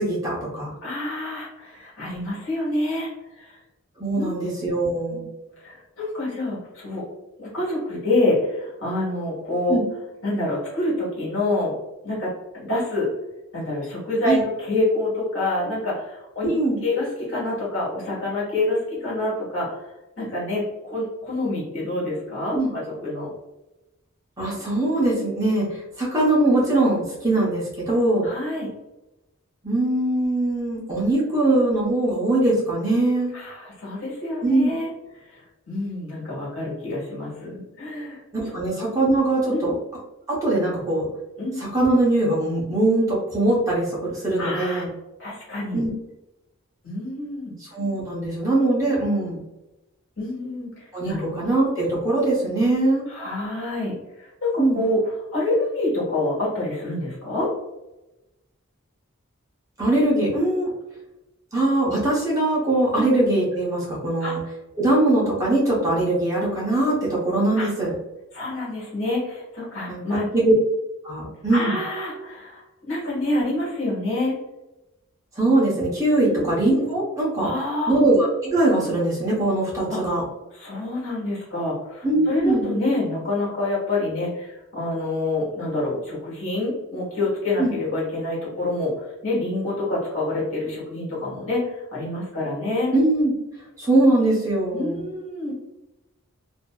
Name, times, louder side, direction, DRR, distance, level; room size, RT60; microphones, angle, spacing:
voice 1, 0.0-0.7 4.0-5.3 9.7-9.8 14.2-14.4 16.4-16.8 22.5-22.7 24.4-28.3 29.6-33.3 34.4-34.7 38.3-39.7 40.3-41.1 41.6-44.9 45.7-45.9 47.6-49.4 50.9-53.1 54.6-54.8 59.8-60.7 61.5-64.4 64.8-67.9 69.9-70.0 70.3-70.5 71.0-71.8 75.4-77.5 77.9-80.2 82.0-82.7 87.6-87.7 92.9-93.3 93.8-95.0, right 2 dB, 15° right, -7 dB, 0.7 m, -21 dB
voice 2, 0.8-3.1 3.3-3.6 4.1-4.4 5.1-5.3 5.6-7.0 7.4-9.8 10.2-11.7 12.0-13.1 13.5-16.5 16.8-19.7 20.2-23.3 27.4-27.5 28.2-28.7 33.3-34.9 35.2-38.2 38.4-38.5 39.5-39.7 41.4-41.6 44.4-44.8 45.2-45.8 46.8-47.5 50.2-51.4 53.1-57.5 62.9-63.0 64.2-64.3 67.6-67.7 68.3-70.3 71.5-74.4 76.1-76.5 77.4-77.9 79.9-80.0 80.5-92.9 94.7-95.5, left 2 dB, 70° left, -5 dB, 1.4 m, -27 dB
2.6 x 2.6 x 2.2 m, 0.97 s
head